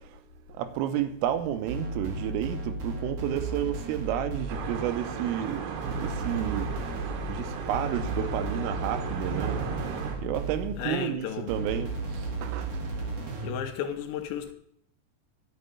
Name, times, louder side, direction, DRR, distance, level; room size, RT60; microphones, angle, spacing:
voice 1, 0.6-6.7 7.3-9.6 10.2-12.7, right 11 dB, 90° right, 3.6 m, -31 dB
sound 1, 1.7-4.9 5.8-11.0 11.5-13.7, right 2 dB, 50° right, 2.0 m, -35 dB
sound 2, 4.5-10.2, right 5 dB, 65° right, 3.1 m, -35 dB
voice 2, 10.7-11.5 13.0-13.1 13.4-14.5, left 9 dB, 75° left, 3.1 m, -34 dB
11.0 x 6.6 x 8.2 m
omnidirectional pair, 5.7 m